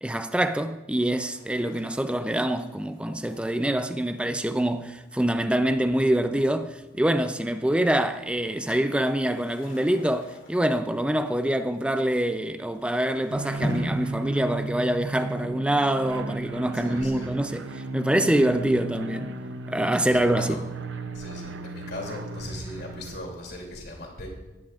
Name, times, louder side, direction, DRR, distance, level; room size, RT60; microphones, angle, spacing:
voice 1, 0.0-19.3 19.7-20.6, right 1 dB, 5° right, 0.4 m, -25 dB
sound 1, 1.2-15.4, equal, 85° left, 2.2 m, -42 dB
sound 2, 13.3-23.2, right 3 dB, 75° right, 0.7 m, -35 dB
voice 2, 16.7-17.3 20.0-20.6 21.1-24.3, left 1 dB, 55° left, 2.8 m, -39 dB
16.5 x 11.0 x 2.4 m
head